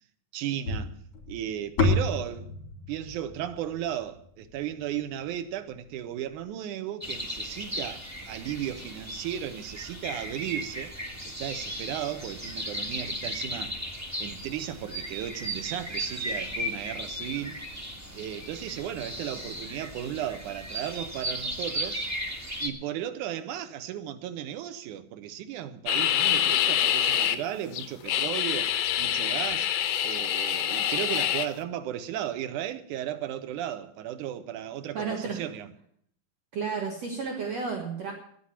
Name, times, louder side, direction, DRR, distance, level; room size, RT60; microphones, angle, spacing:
voice 1, 0.3-0.9 1.3-2.5 2.9-10.9 11.2-13.7 14.2-17.6 18.1-22.0 22.6-29.7 30.0-35.7, right 11 dB, 75° right, 2.4 m, -35 dB
sound 1, 0.7-5.0, left 2 dB, 45° left, 3.7 m, -30 dB
sound 2, 7.0-22.7, equal, 15° right, 0.6 m, -36 dB
sound 3, 25.9-27.4 27.7-31.5, left 10 dB, 85° left, 2.5 m, -26 dB
voice 2, 34.9-35.4 36.5-38.1, right 5 dB, 55° right, 2.6 m, -32 dB
10.5 x 9.6 x 9.9 m
omnidirectional pair, 3.8 m